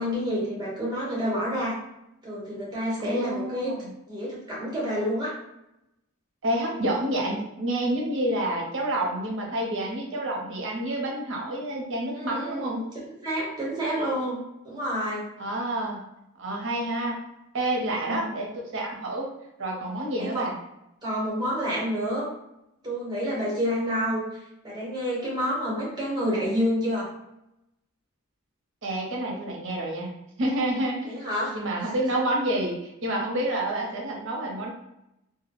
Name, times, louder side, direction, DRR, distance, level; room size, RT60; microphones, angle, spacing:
voice 1, 0.0-1.8 2.2-3.7 4.1-5.3 12.1-12.8 13.2-14.4 14.6-15.2 17.8-18.3 20.2-20.5 21.0-22.3 22.8-27.1 31.1-31.9, equal, 20° right, -5 dB, 0.8 m, -29 dB
voice 2, 3.0-3.9 6.4-12.8 15.4-16.0 16.4-17.2 17.5-19.3 19.6-20.5 28.8-30.1 30.4-31.2 31.5-34.7, right 1 dB, 60° right, 0 dB, 0.6 m, -28 dB
2.2 x 2.0 x 2.9 m, 0.86 s
head